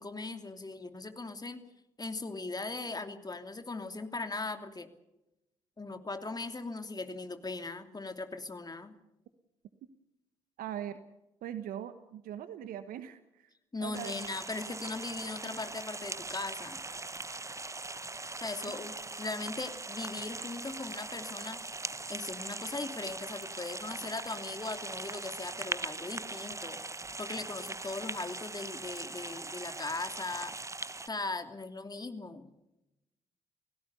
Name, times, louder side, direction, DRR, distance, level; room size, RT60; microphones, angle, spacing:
voice 1, 0.0-1.7 2.0-4.9 5.8-8.9 13.7-16.8 18.4-21.6 22.1-26.8 27.2-30.5 31.1-32.5, left 3 dB, 25° left, 8 dB, 2.9 m, -39 dB
voice 2, 10.6-11.0 11.4-13.5 13.8-14.1 18.6-18.7, right 10 dB, 65° right, 12 dB, 1.2 m, -41 dB
sound 1, 13.9-31.1, right 3 dB, 20° right, 1.2 m, -41 dB
29.0 x 17.0 x 7.0 m, 0.94 s
hypercardioid pair, 45°, 16 cm